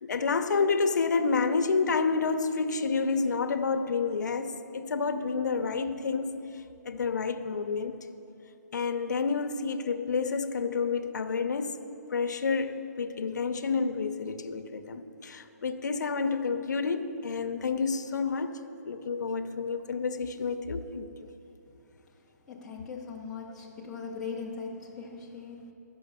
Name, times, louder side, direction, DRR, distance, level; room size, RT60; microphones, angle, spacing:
voice 1, 0.0-6.4 6.8-8.0 8.7-11.8 12.1-18.6 18.9-21.1, left 4 dB, 75° left, 0.6 m, -29 dB
voice 2, 22.5-25.7, left 5 dB, 5° left, 0.5 m, -40 dB
11.5 x 5.7 x 6.7 m
hypercardioid pair, 175°, 10 cm